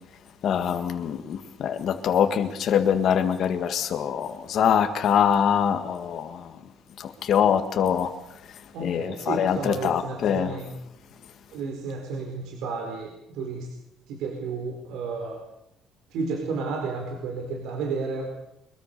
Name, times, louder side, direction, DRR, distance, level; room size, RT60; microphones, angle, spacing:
voice 1, 0.4-6.6 7.0-8.1 8.5-10.6, left 8 dB, 45° left, 1.9 m, -24 dB
voice 2, 8.7-10.7 11.5-13.7 14.1-15.4 16.1-18.3, right 4 dB, 75° right, 4.5 m, -32 dB
23.5 x 22.5 x 6.9 m
cardioid pair, 170°, 0 cm